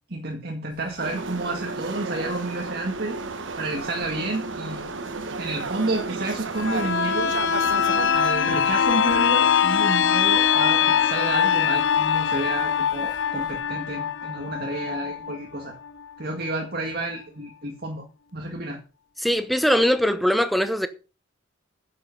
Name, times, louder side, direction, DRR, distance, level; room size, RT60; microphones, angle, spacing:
voice 1, 0.1-3.2 3.6-4.8 5.4-7.3 8.1-15.8 16.2-18.0 18.3-18.8, right 2 dB, 55° right, 2.1 m, -30 dB
sound 1, 0.7-13.6, left 1 dB, 20° left, 5.2 m, -53 dB
sound 2, 1.0-8.1, right 3 dB, 80° right, 1.1 m, -32 dB
sound 3, 6.5-16.1 16.5-16.6, left 8 dB, 70° left, 0.7 m, -22 dB
voice 2, 19.2-20.9, equal, ahead, 0.9 m, -21 dB
10.5 x 7.9 x 5.4 m
head